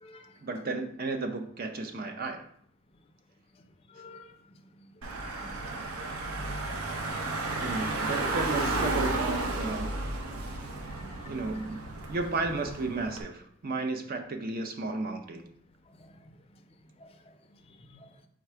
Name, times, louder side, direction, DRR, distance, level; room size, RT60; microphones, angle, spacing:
voice 1, 0.4-2.4 7.6-10.0 10.4-10.6 11.3-11.8 12.1-15.4, right 3 dB, 45° right, 5 dB, 0.5 m, -33 dB
voice 2, 3.9-4.3 5.6-6.2 10.9-11.3 16.0-16.1 17.0-17.1 18.0-18.1, left 3 dB, 25° left, 6 dB, 0.4 m, -50 dB
Car / Engine, 5.0-13.2, right 2 dB, 85° right, 0.6 m, -33 dB
4.5 x 2.4 x 4.5 m, 0.64 s
head